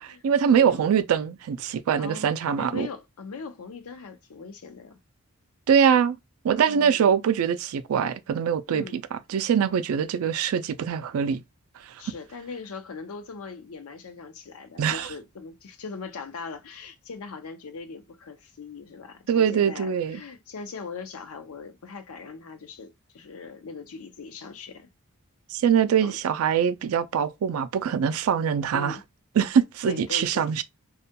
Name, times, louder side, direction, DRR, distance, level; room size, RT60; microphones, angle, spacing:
voice 1, 0.0-2.9 5.7-6.2 6.4-9.0 9.3-11.4 14.8-15.1 19.3-20.2 25.5-29.0 29.4-30.6, right 7 dB, 75° right, 0.3 m, -23 dB
voice 2, 0.5-0.9 2.0-2.3 2.6-5.0 6.7-7.1 8.7-9.0 12.0-24.9 26.0-26.2 28.7-29.0 29.8-30.5, left 4 dB, 75° left, 0.5 m, -40 dB
2.3 x 2.2 x 2.7 m
head